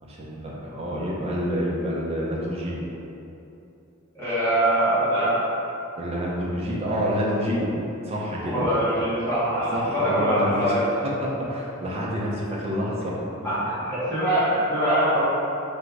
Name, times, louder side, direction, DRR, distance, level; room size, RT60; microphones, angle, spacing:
voice 1, 0.0-2.8 6.0-7.7 8.1-8.7 9.7-13.3, equal, 30° right, -4 dB, 0.6 m, -28 dB
voice 2, 4.1-5.3 8.4-10.8 13.4-15.2, right 1 dB, 10° left, -12 dB, 1.1 m, -23 dB
3.5 x 2.6 x 4.6 m, 2.8 s
head